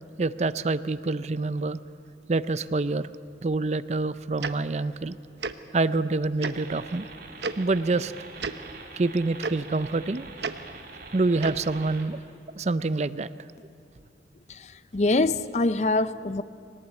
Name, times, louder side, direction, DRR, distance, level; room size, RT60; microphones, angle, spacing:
voice 1, 0.2-1.8 2.3-3.1 3.4-5.2 5.7-7.1 7.6-8.1 9.0-10.3 11.1-12.2 12.5-13.3, right 3 dB, 40° right, 0.5 m, -26 dB
Tick-tock, 4.4-4.5 5.4-5.5 6.4-6.5 7.4-7.5 8.4-8.5 9.4-9.5 10.4-10.5 11.4-11.6, right 4 dB, 75° right, 0.9 m, -30 dB
sound 1, 6.5-12.0, right 3 dB, 60° right, 3.4 m, -44 dB
voice 2, 14.5-16.4, left 2 dB, 40° left, 0.5 m, -25 dB
23.0 x 19.0 x 8.7 m
head